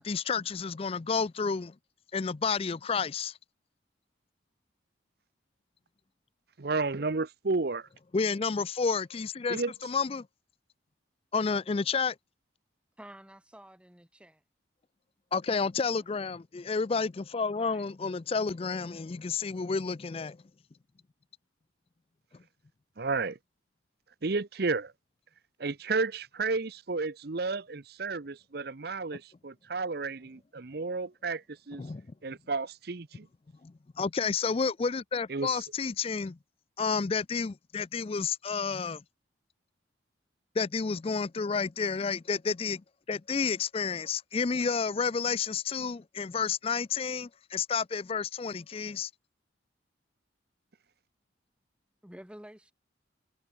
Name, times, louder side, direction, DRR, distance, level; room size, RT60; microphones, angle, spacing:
voice 1, 0.0-1.8 2.1-3.4 8.1-10.3 11.3-12.2 15.3-20.4 31.8-32.1 33.6-36.4 36.8-39.0 40.6-49.1, left 5 dB, 30° left, 0.4 m, -30 dB
voice 2, 6.6-7.9 9.5-9.7 23.0-23.4 24.2-24.9 25.6-31.8 32.2-33.3 35.3-35.6, right 3 dB, 55° right, 0.7 m, -32 dB
voice 3, 13.0-14.4 17.4-17.9 52.0-52.7, right 1 dB, 5° right, 1.2 m, -50 dB
head